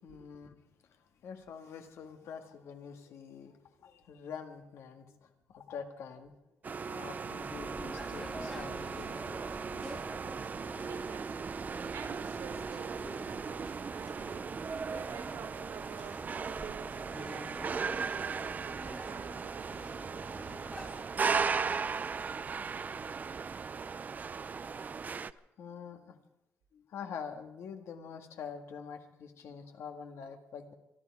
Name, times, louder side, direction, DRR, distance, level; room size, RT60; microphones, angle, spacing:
voice 1, 0.0-0.6 0.9-6.4 6.8-9.2 9.7-10.0 25.6-26.2 26.7-30.7, left 6 dB, 75° left, 1.9 m, -46 dB
sound 1, 6.6-25.3, right 5 dB, 35° right, 0.6 m, -37 dB
sound 2, 7.4-21.0, left 1 dB, 10° left, 1.9 m, -49 dB
voice 2, 10.9-11.5 11.9-14.5 14.8-20.0 20.8-20.9, right 7 dB, 80° right, 1.8 m, -49 dB
24.5 x 12.0 x 4.8 m
cardioid pair, 100°, 5 cm